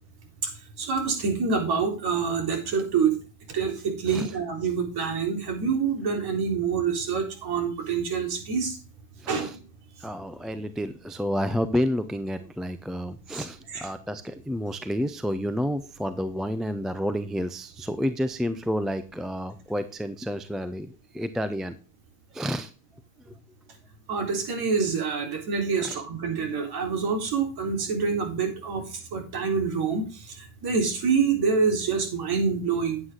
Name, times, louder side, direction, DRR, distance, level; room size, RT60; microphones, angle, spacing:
voice 1, 0.8-3.1 3.5-8.8 9.3-9.5 13.3-13.5 13.7-13.9 24.1-28.8 29.1-33.0, right 5 dB, 45° right, 3 dB, 3.8 m, -26 dB
voice 2, 9.2-9.6 10.0-21.7 22.3-22.7 23.3-23.4 25.8-26.0, equal, ahead, 11 dB, 0.4 m, -30 dB
9.6 x 8.8 x 3.7 m, 0.34 s
supercardioid pair, 120°, 50 cm